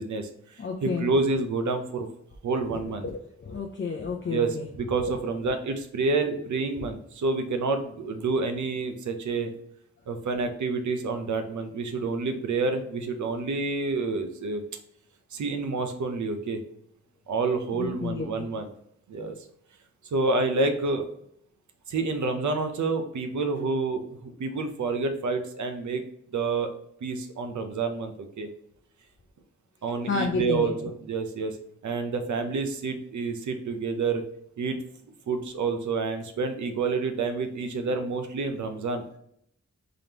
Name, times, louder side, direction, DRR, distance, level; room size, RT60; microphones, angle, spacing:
voice 1, 0.0-2.1 2.4-3.1 4.3-9.5 10.1-14.6 15.3-16.6 17.3-18.7 19.1-19.3 20.1-21.0 21.9-26.0 26.3-26.7 27.0-28.5 29.8-31.6 31.8-34.2 34.6-34.8 35.3-39.0, right 3 dB, 80° right, 6 dB, 0.6 m, -28 dB
voice 2, 0.6-1.1 3.0-4.7 17.7-18.5 30.1-30.7, left 4 dB, 40° left, 1 dB, 0.4 m, -31 dB
3.8 x 3.4 x 2.8 m, 0.72 s
wide cardioid pair, 145°, 29 cm